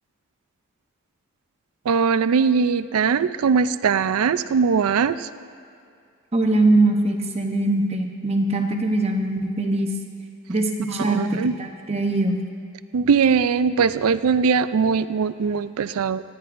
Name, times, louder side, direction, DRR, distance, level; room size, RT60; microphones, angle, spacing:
voice 1, 1.9-5.3 11.1-11.5 12.9-16.2, right 5 dB, 85° right, 14 dB, 0.4 m, -20 dB
voice 2, 6.3-9.9 10.5-12.4, right 2 dB, 30° right, 3 dB, 0.8 m, -22 dB
24.0 x 10.5 x 2.6 m, 2.4 s
head